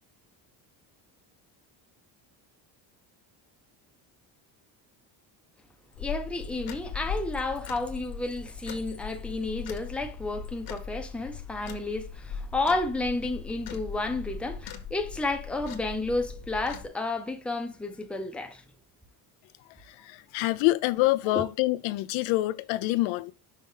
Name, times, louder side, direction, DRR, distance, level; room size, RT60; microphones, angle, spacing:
sound 1, 5.9-16.9, left 6 dB, 50° left, 1.1 m, -39 dB
voice 1, 6.0-18.6 21.3-21.4, left 2 dB, 5° left, 0.5 m, -31 dB
voice 2, 20.0-23.3, left 18 dB, 90° left, 0.6 m, -26 dB
5.5 x 5.1 x 3.8 m
cardioid pair, 155°, 45 cm